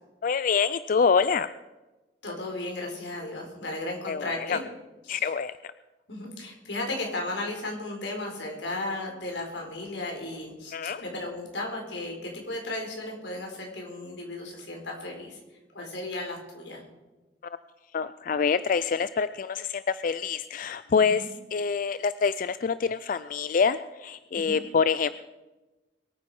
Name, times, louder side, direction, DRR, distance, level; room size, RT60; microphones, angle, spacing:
voice 1, 0.2-1.5 4.1-4.6 5.1-5.5 10.7-11.0 17.9-25.1, left 5 dB, 50° left, 14 dB, 0.4 m, -26 dB
voice 2, 2.2-4.6 5.1-5.2 6.1-15.4 15.7-16.8 20.9-21.3 24.3-24.6, left 2 dB, 90° left, 1 dB, 4.3 m, -35 dB
22.5 x 9.5 x 4.9 m, 1.1 s
head